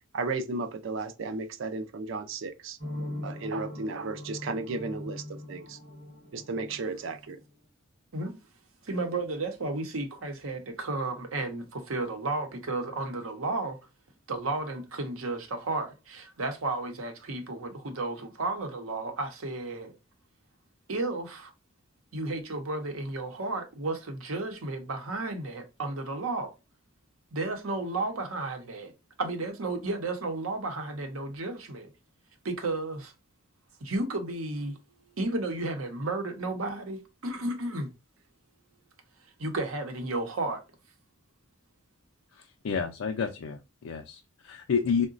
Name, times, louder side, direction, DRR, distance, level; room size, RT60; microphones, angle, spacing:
voice 1, 0.1-2.8 3.2-5.8 6.3-7.4, right 3 dB, 65° right, 0.4 m, -34 dB
sound 1, 2.8-7.6, left 1 dB, 40° right, 1.0 m, -41 dB
voice 2, 8.8-13.8 14.3-19.9 20.9-21.5 22.1-26.5 27.3-28.9 29.2-31.9 32.4-33.1 33.8-34.8 35.2-37.9 39.4-40.6, right 2 dB, 85° right, 0.8 m, -33 dB
voice 3, 42.6-45.1, left 6 dB, 75° left, 0.4 m, -29 dB
3.8 x 2.1 x 2.4 m
head